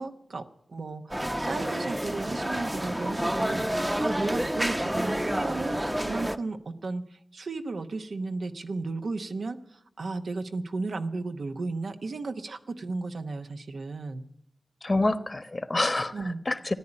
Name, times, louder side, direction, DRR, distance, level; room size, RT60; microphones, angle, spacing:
voice 1, 0.0-7.0 7.3-9.6 10.0-14.2 16.1-16.4, right 3 dB, 85° right, 7 dB, 0.9 m, -34 dB
sound 1, 1.1-6.4, right 1 dB, 10° right, 0.8 m, -29 dB
voice 2, 14.8-16.7, left 2 dB, 40° left, 13 dB, 1.1 m, -27 dB
14.0 x 9.8 x 9.9 m, 0.72 s
wide cardioid pair, 55°, 0 cm